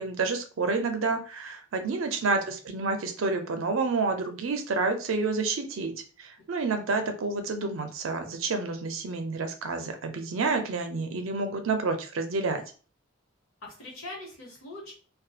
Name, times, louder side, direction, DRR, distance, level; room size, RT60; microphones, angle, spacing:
voice 1, 0.0-5.9 6.2-12.6, right 3 dB, 80° right, 6 dB, 0.5 m, -29 dB
voice 2, 1.7-2.2 6.8-6.9 13.6-14.9, left 2 dB, 90° left, -2 dB, 1.0 m, -43 dB
2.6 x 2.3 x 2.4 m, 0.39 s
head